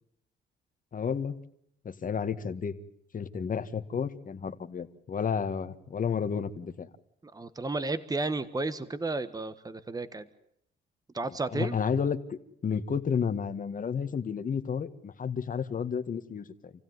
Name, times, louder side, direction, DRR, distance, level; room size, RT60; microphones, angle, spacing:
voice 1, 0.9-1.4 1.8-2.7 3.1-6.9 11.3-16.7, left 6 dB, 45° left, 9 dB, 1.7 m, -31 dB
voice 2, 7.3-10.2 11.1-11.8, right 3 dB, 20° right, 13 dB, 1.3 m, -32 dB
28.0 x 16.0 x 9.6 m, 0.73 s
cardioid pair, 90°, 20 cm